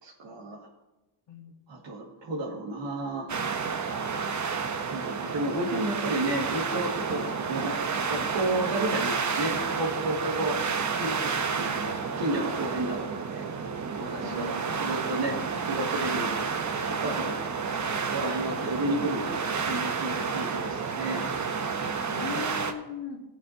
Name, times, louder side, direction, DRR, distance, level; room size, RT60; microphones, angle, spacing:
voice 1, 0.0-0.7 1.7-3.3 4.9-10.6 11.0-13.4 14.0-15.4 15.7-16.5 16.9-17.5 17.8-21.3, right 1 dB, 60° right, -5 dB, 2.2 m, -32 dB
sound 1, 3.3-22.7, right 5 dB, 35° right, 1.0 m, -30 dB
voice 2, 14.2-15.1 22.1-23.2, left 5 dB, 60° left, -2 dB, 1.8 m, -38 dB
16.5 x 8.2 x 2.9 m, 1.0 s
cardioid pair, 105°, 49 cm